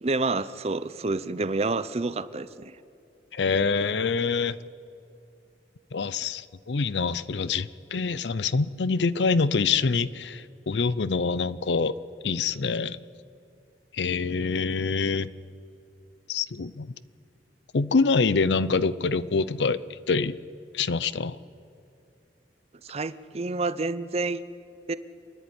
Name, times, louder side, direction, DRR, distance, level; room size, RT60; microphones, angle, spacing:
voice 1, 0.0-2.8 22.8-24.4 24.9-25.0, right 3 dB, 35° right, 15 dB, 0.6 m, -28 dB
voice 2, 3.3-4.6 5.9-11.9 12.2-13.0 13.9-15.3 16.3-16.9 17.7-19.8 20.1-20.3 20.7-21.4, left 4 dB, 80° left, 17 dB, 0.6 m, -25 dB
27.0 x 10.5 x 9.8 m, 2.5 s
head